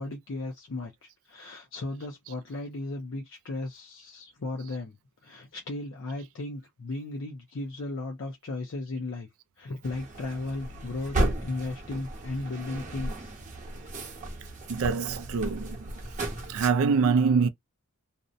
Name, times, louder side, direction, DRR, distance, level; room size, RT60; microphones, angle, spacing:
voice 1, 0.0-5.0 5.2-9.3 9.6-13.3 14.0-14.1, left 2 dB, 60° left, 0.5 m, -36 dB
sound 1, 9.8-16.7, right 1 dB, 35° right, 0.8 m, -34 dB
voice 2, 14.7-16.0 16.5-17.5, right 5 dB, 65° right, 0.3 m, -25 dB
2.6 x 2.1 x 2.5 m
head